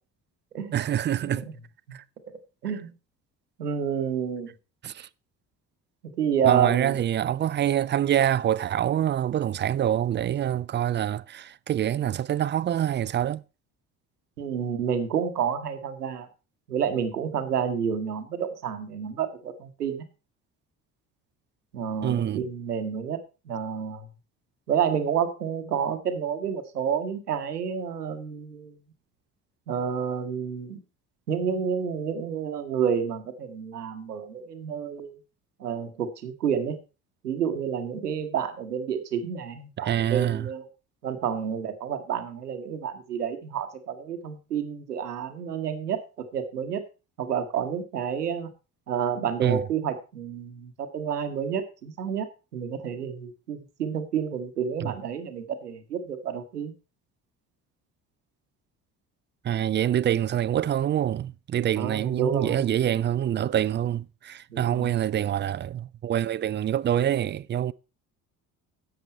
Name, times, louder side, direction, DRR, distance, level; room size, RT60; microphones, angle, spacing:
voice 1, 0.7-1.4 1.9-2.0 4.8-5.1 6.4-13.4 22.0-22.4 39.8-40.5 49.4-49.6 54.8-54.9 59.4-67.7, right 11 dB, 25° right, 0.4 m, -26 dB
voice 2, 3.6-4.5 6.2-7.0 14.4-16.3 16.7-20.0 21.7-23.2 23.5-24.1 24.7-28.7 29.7-30.8 31.3-35.1 35.6-36.8 37.2-40.6 41.0-46.0 46.3-46.8 47.2-48.5 48.9-56.7 61.8-62.6 64.5-64.9, right 7 dB, 90° right, 1.2 m, -29 dB
11.0 x 7.6 x 4.4 m
hypercardioid pair, 50°, 46 cm